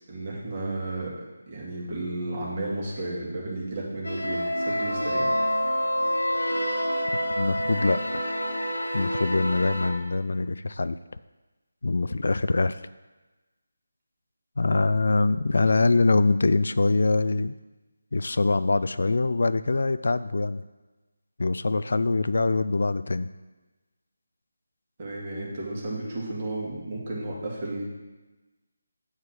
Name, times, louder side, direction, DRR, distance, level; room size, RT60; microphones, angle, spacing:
voice 1, 0.1-5.3 25.0-27.8, right 2 dB, 35° right, -4 dB, 2.3 m, -33 dB
sound 1, 4.0-9.9, equal, 85° left, 1.5 m, -27 dB
voice 2, 7.3-8.2 8.9-11.0 11.8-12.8 14.6-17.5 18.1-20.6 21.4-23.3, left 3 dB, 65° left, 14 dB, 0.3 m, -24 dB
8.0 x 4.8 x 6.1 m, 1.2 s
figure-of-eight pair, 160°, 0 cm